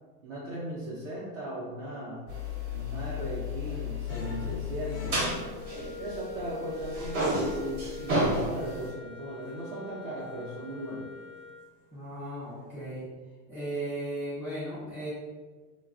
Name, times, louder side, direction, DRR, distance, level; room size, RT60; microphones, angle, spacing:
voice 1, 0.2-2.3 2.7-5.3 6.0-11.1, right 1 dB, 55° right, -7 dB, 0.7 m, -37 dB
sound 1, 2.3-6.5 6.8-8.9, left 1 dB, 40° right, 0.9 m, -32 dB
sound 2, 4.1-7.5 7.8-8.4 9.0-9.5 10.1-10.7 11.1-11.4 11.8-12.9, left 4 dB, 55° left, 0.5 m, -46 dB
Wind instrument woodwind instrument, 5.2-11.7, left 4 dB, 90° left, 0.8 m, -43 dB
voice 2, 11.9-13.0 13.5-15.1, right 1 dB, ahead, -18 dB, 0.4 m, -36 dB
3.1 x 2.2 x 2.4 m, 1.4 s
supercardioid pair, 180°, 49 cm